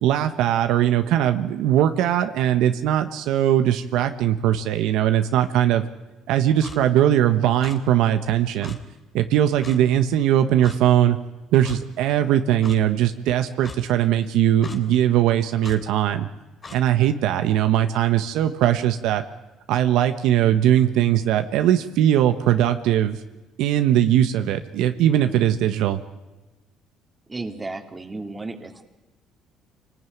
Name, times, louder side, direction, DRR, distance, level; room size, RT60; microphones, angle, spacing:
voice 1, 0.0-5.8 6.3-8.8 9.1-11.2 11.5-16.3 16.7-19.2 19.7-23.2 23.6-26.0, right 11 dB, 75° right, 8 dB, 1.2 m, -20 dB
Clock, 6.6-6.8 7.6-7.8 8.6-8.8 9.6-9.8 10.6-10.8 11.6-11.8 12.6-12.8 13.6-13.8 14.6-14.8 15.6-15.8 16.6-16.8, left 4 dB, 30° left, 3.2 m, -39 dB
voice 2, 27.3-28.9, right 3 dB, 20° right, 6 dB, 2.7 m, -33 dB
26.5 x 19.0 x 9.4 m, 1.1 s
cardioid pair, 100°, 0 cm